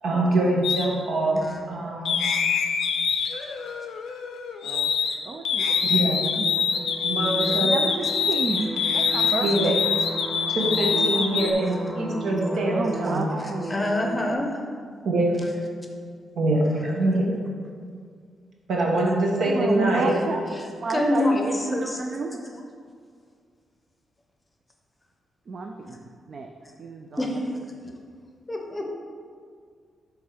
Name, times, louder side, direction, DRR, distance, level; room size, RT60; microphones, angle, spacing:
voice 1, 0.0-2.2 5.8-6.2 7.0-7.8 9.4-9.8 10.5-13.3 15.0-15.4 16.3-17.3 18.7-20.2, right 1 dB, 75° right, -1 dB, 1.2 m, -24 dB
sound 1, 0.6-0.8 2.0-5.2 5.4-11.5, left 6 dB, 85° left, 0.5 m, -25 dB
voice 2, 5.2-5.9 6.4-6.6 7.6-9.9 12.7-13.9 17.2-17.4 19.4-20.4 20.8-22.4 25.5-26.5 26.8-27.6 27.8-28.0, right 3 dB, 45° right, 3 dB, 0.4 m, -31 dB
sound 2, 5.3-14.3, right 2 dB, 10° right, 1.0 m, -35 dB
voice 3, 13.7-14.6 20.9-22.5 27.2-27.4 28.5-28.9, left 1 dB, 15° left, 2 dB, 0.7 m, -26 dB
7.0 x 3.7 x 4.8 m, 2.1 s
wide cardioid pair, 140°, 0 cm